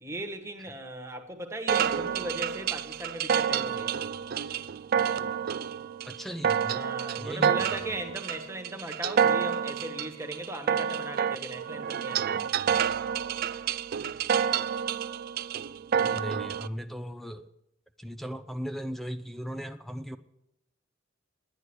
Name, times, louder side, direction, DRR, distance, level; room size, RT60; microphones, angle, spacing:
voice 1, 0.0-4.1 6.6-12.5, right 1 dB, 15° right, 1.5 m, -38 dB
sound 1, 1.7-16.7, right 8 dB, 50° right, 0.4 m, -29 dB
voice 2, 6.0-6.8 7.2-8.0 16.0-17.5 18.0-20.2, equal, ahead, 0.6 m, -37 dB
10.5 x 9.9 x 7.9 m
head